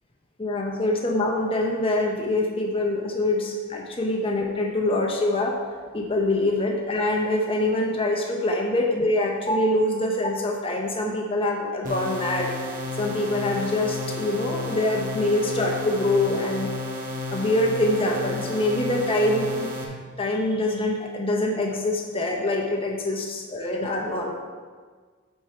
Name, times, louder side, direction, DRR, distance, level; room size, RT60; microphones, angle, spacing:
voice 1, 0.4-5.6 5.9-12.5 13.0-16.7 17.3-19.7 20.2-24.3, left 1 dB, 25° left, 0 dB, 0.9 m, -24 dB
sound 1, 11.8-19.8, left 2 dB, 40° right, 1.0 m, -32 dB
8.1 x 4.6 x 4.6 m, 1.5 s
head